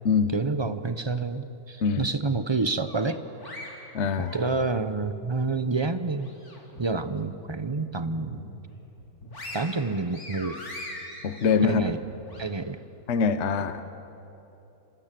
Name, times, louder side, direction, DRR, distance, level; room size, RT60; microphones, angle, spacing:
voice 1, 0.3-3.2 4.2-6.3 6.8-8.4 9.5-10.6 11.6-12.0 12.4-12.8, right 3 dB, 30° right, 11 dB, 0.5 m, -28 dB
sound 1, 2.9-4.9 5.3-6.8 7.2-7.3 7.8-8.6 9.0-12.4, left 1 dB, 75° left, 4.5 m, -42 dB
voice 2, 3.9-4.3 11.2-11.8 13.1-13.8, left 5 dB, 50° left, 10 dB, 1.2 m, -23 dB
26.5 x 25.0 x 7.6 m, 2.9 s
omnidirectional pair, 1.6 m